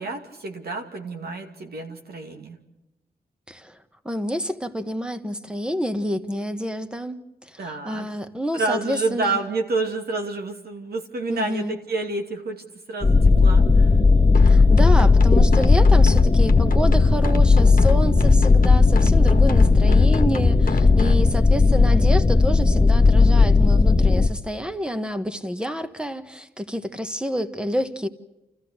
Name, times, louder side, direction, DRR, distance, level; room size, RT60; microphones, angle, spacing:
voice 1, 0.0-2.6 7.6-8.2 8.5-14.0, right 3 dB, 80° right, 4 dB, 2.6 m, -29 dB
voice 2, 3.5-3.8 4.0-9.4 11.3-11.8 14.4-28.1, equal, 5° right, 9 dB, 1.5 m, -28 dB
sound 1, 13.0-24.3, left 3 dB, 25° left, 1.4 m, -16 dB
sound 2, 14.3-21.2, left 5 dB, 60° left, 1.3 m, -26 dB
29.5 x 14.5 x 8.2 m, 0.98 s
cardioid pair, 75°, 16 cm